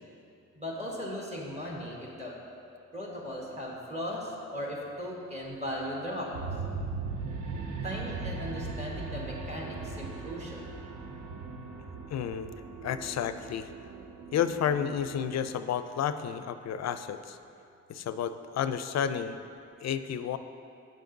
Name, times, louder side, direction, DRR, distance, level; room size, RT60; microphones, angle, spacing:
voice 1, 0.5-2.3 2.9-6.3 7.8-10.7, equal, 20° right, -4 dB, 1.4 m, -37 dB
sound 1, 6.3-15.5, right 4 dB, 90° right, 0.7 m, -39 dB
voice 2, 12.1-12.5 12.8-13.7 14.3-17.4 17.9-19.4 19.8-20.4, left 8 dB, 55° left, 11 dB, 0.4 m, -31 dB
7.4 x 5.2 x 3.9 m, 2.6 s
supercardioid pair, 50°, 32 cm